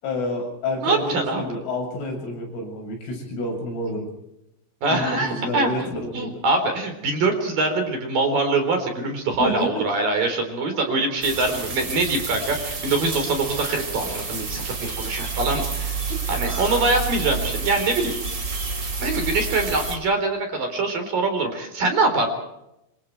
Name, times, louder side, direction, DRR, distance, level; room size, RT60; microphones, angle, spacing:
voice 1, 0.0-4.1 4.9-6.4 9.4-9.8, left 1 dB, 75° left, 0 dB, 10.0 m, -29 dB
voice 2, 0.8-1.4 4.8-5.9 6.1-16.0 16.3-18.1 19.0-22.3, right 3 dB, 45° right, 5 dB, 5.1 m, -23 dB
sound 1, 11.2-20.0, right 4 dB, 25° right, 3.1 m, -29 dB
27.0 x 26.5 x 4.7 m, 0.85 s
omnidirectional pair, 5.8 m